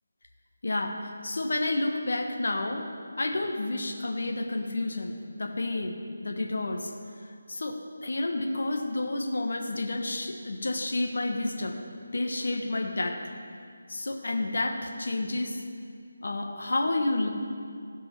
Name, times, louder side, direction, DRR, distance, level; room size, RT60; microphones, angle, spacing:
voice 1, 0.6-2.9 3.2-6.9 7.2-11.8 12.1-13.2 13.9-15.6 16.2-17.3, left 2 dB, 65° left, 3 dB, 1.3 m, -30 dB
15.5 x 5.4 x 6.0 m, 2.3 s
figure-of-eight pair, 170°, 0 cm